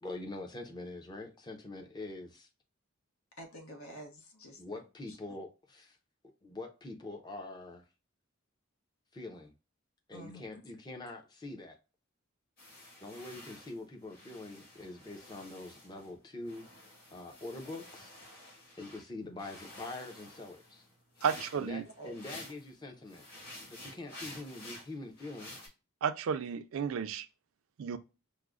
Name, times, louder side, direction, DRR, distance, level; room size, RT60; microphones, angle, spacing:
voice 1, 0.0-2.5 4.6-6.0 6.4-7.8 9.1-9.5 10.1-11.8 13.0-16.7 17.1-20.8 21.5-23.3 23.7-25.7, left 2 dB, 20° left, 0.5 m, -44 dB
voice 2, 3.4-4.6 5.1-5.2 10.1-10.6 22.0-22.1, equal, 80° left, 1.0 m, -48 dB
sound 1, 12.6-16.1 16.4-19.0 19.4-22.7 23.1-25.7, left 1 dB, 45° left, 1.8 m, -51 dB
voice 3, 21.2-21.8 26.0-27.3 27.8-28.0, right 7 dB, 70° right, 0.4 m, -32 dB
4.8 x 2.0 x 2.3 m
head